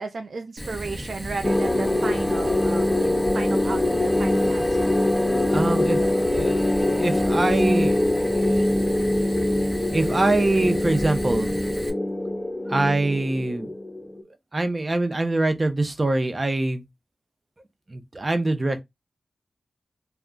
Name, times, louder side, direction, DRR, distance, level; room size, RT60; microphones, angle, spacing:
voice 1, 0.0-5.0, right 4 dB, 75° right, 0.4 m, -34 dB
Fire, 0.6-11.9, equal, 5° right, 0.8 m, -35 dB
sound 1, 1.4-14.2, left 1 dB, 25° left, 0.4 m, -23 dB
voice 2, 5.5-8.0 8.3-8.6 9.9-11.5 12.7-13.7 14.5-16.9 17.9-18.8, right 2 dB, 35° right, 0.6 m, -24 dB
2.2 x 2.2 x 3.7 m
cardioid pair, 55°, 0 cm